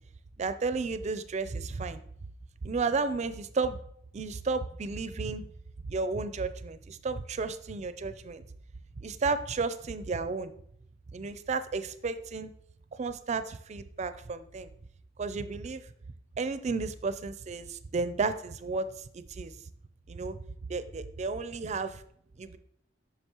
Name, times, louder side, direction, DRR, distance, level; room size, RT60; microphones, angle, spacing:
voice 1, 0.4-2.0 2.6-3.8 4.1-5.4 5.8-8.4 9.0-10.5 11.1-12.5 12.9-14.7 15.2-15.9 16.4-19.5 20.1-20.4 20.7-22.0 22.4-22.6, right 4 dB, 40° right, 12 dB, 0.4 m, -33 dB
8.0 x 5.8 x 2.9 m, 0.69 s
head